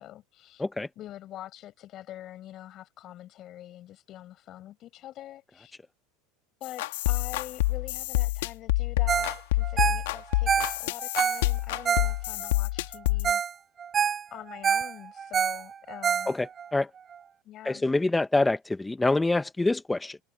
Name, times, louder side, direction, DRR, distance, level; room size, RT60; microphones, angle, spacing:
voice 1, 0.0-0.6 1.0-5.7 6.6-13.4 14.3-16.4 17.4-17.8, left 13 dB, 50° left, 7.7 m, -45 dB
sound 1, 6.6-13.3, left 19 dB, 75° left, 2.3 m, -27 dB
Ringtone, 9.1-9.4 9.6-12.5 12.9-13.0 13.2-13.5 13.8-16.7 17.1-17.2, right 7 dB, 30° right, 0.6 m, -27 dB
voice 2, 16.3-16.9 17.6-20.2, left 2 dB, 10° left, 0.8 m, -26 dB
hypercardioid pair, 90°, 0 cm